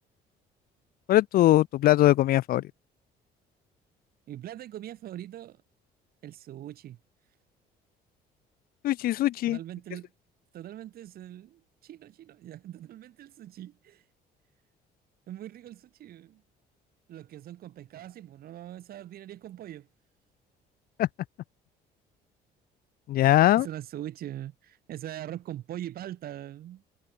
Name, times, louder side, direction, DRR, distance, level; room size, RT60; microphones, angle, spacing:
voice 1, 1.1-2.6 8.8-9.6 21.0-21.1 23.1-23.7, left 14 dB, 60° left, 0.5 m, -21 dB
voice 2, 4.3-5.6 6.2-7.0 9.5-10.1 10.5-14.1 15.3-16.4 17.1-19.9 23.6-26.8, right 12 dB, 65° right, 2.6 m, -42 dB
cardioid pair, 110°, 17 cm